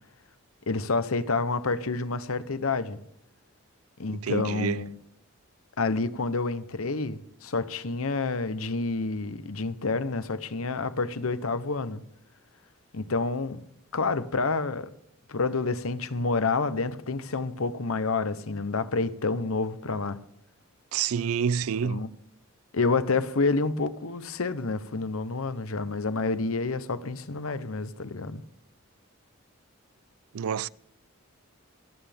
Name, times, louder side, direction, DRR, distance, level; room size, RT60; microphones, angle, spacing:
voice 1, 0.7-3.0 4.0-4.9 5.8-12.0 12.9-13.6 13.9-14.9 15.3-20.2 21.8-22.1 22.7-28.4, left 3 dB, 85° left, 0.9 m, -28 dB
voice 2, 4.1-4.8 20.9-22.0 30.3-30.7, right 7 dB, 90° right, 0.4 m, -28 dB
25.0 x 9.1 x 3.5 m
head